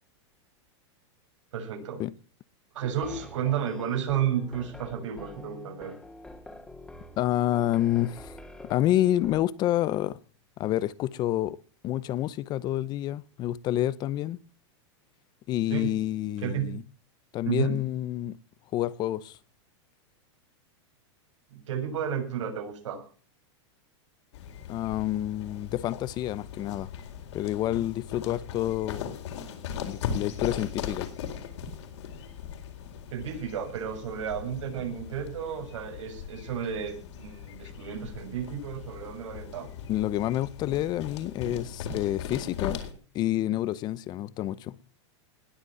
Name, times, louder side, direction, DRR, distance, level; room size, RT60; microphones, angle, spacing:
voice 1, 1.5-2.0 2.7-6.0 15.7-15.9 16.4-16.7 17.5-17.8 21.5-23.0 33.1-39.7, right 9 dB, 90° right, 7.1 m, -32 dB
sound 1, 2.8-9.4, left 1 dB, 5° left, 2.1 m, -46 dB
voice 2, 7.2-8.3 8.7-10.2 10.6-11.6 11.8-14.4 15.5-16.8 17.3-18.4 18.7-19.4 24.7-26.9 27.3-29.2 29.8-31.1 39.9-42.8 43.1-44.7, left 13 dB, 25° left, 0.7 m, -28 dB
sound 2, 24.3-42.9, left 7 dB, 70° left, 4.1 m, -39 dB
20.0 x 8.2 x 7.7 m
supercardioid pair, 155°, 15 cm